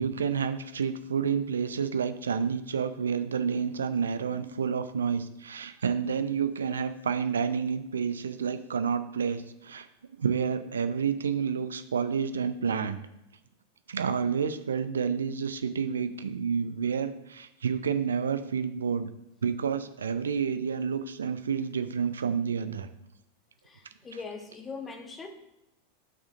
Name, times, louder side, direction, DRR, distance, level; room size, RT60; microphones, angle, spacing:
voice 1, 0.0-9.9 10.2-13.0 13.9-19.1 19.4-22.9, right 6 dB, 70° right, 10 dB, 0.5 m, -29 dB
voice 2, 23.6-25.3, left 4 dB, 20° left, 6 dB, 1.1 m, -41 dB
11.0 x 6.2 x 2.6 m, 0.90 s
figure-of-eight pair, 90°, 0 cm